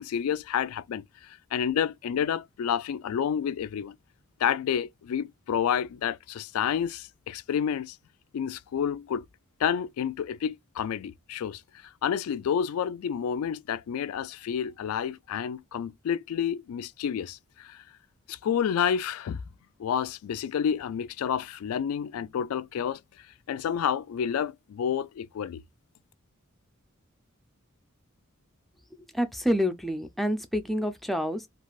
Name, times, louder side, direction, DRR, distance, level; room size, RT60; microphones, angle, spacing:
voice 1, 0.0-4.0 4.4-8.0 8.3-9.2 9.6-11.6 12.0-17.8 18.3-19.4 19.8-23.0 23.5-25.6, left 8 dB, 90° left, 0.3 m, -29 dB
voice 2, 29.1-31.5, equal, ahead, 0.4 m, -28 dB
3.2 x 2.4 x 2.3 m
head